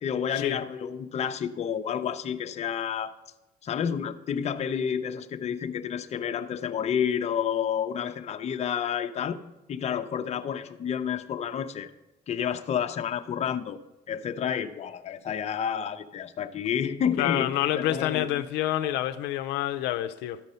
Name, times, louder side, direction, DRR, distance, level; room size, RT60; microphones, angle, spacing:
voice 1, 0.0-3.1 3.6-9.4 9.7-11.9 12.3-13.8 14.1-18.4, left 8 dB, 40° left, 0.6 m, -30 dB
voice 2, 17.2-20.4, left 13 dB, 85° left, 0.5 m, -28 dB
12.5 x 5.3 x 5.5 m
cardioid pair, 110°, 17 cm